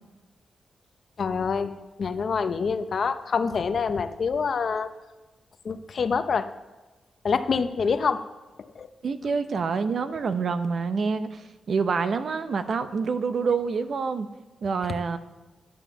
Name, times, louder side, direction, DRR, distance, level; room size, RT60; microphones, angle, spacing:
voice 1, 1.2-1.7 2.0-4.9 5.6-6.5 7.2-8.3 8.8-8.9, left 5 dB, 55° left, 10 dB, 0.7 m, -26 dB
voice 2, 9.0-14.3 14.6-15.2, right 5 dB, 60° right, 10 dB, 0.8 m, -27 dB
11.5 x 7.7 x 7.2 m, 1.2 s
wide cardioid pair, 110°, 0 cm